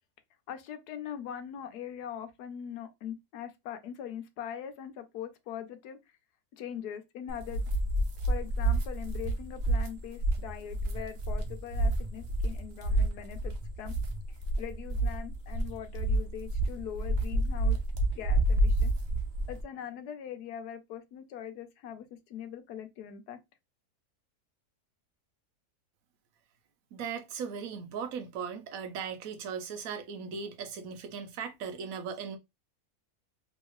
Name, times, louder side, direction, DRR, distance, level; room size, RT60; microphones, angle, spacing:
voice 1, 0.5-6.0 6.5-7.6 8.3-13.9 14.3-17.8 18.1-18.9 19.5-23.4, left 9 dB, 90° left, 1.2 m, -42 dB
sound 1, 7.3-19.6, right 1 dB, 55° right, 0.8 m, -29 dB
voice 2, 26.9-32.4, right 6 dB, 70° right, 1.1 m, -38 dB
3.1 x 2.8 x 3.0 m
omnidirectional pair, 1.6 m